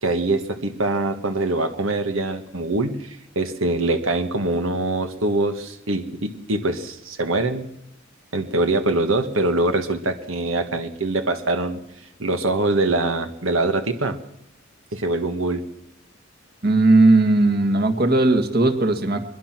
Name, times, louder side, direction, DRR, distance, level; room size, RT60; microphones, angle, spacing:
voice 1, 0.0-7.7 8.3-11.8 12.2-14.2 14.9-15.6, right 2 dB, 90° right, 7 dB, 1.5 m, -23 dB
voice 2, 16.6-19.2, right 2 dB, 50° right, 8 dB, 1.9 m, -17 dB
22.5 x 21.5 x 6.1 m, 0.78 s
head